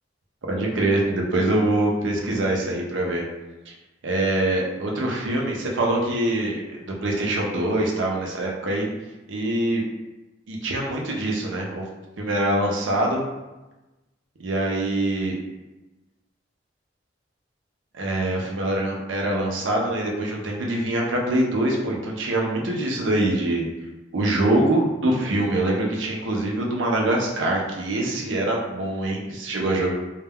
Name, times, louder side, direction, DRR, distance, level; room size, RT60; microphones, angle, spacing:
voice 1, 0.5-3.2 3.7-3.8 4.0-8.9 9.3-9.8 10.5-11.9 12.2-13.2 14.4-15.4 17.9-23.7 24.1-29.9, right 1 dB, 85° right, -1 dB, 0.6 m, -24 dB
2.2 x 2.2 x 3.4 m, 1.1 s
head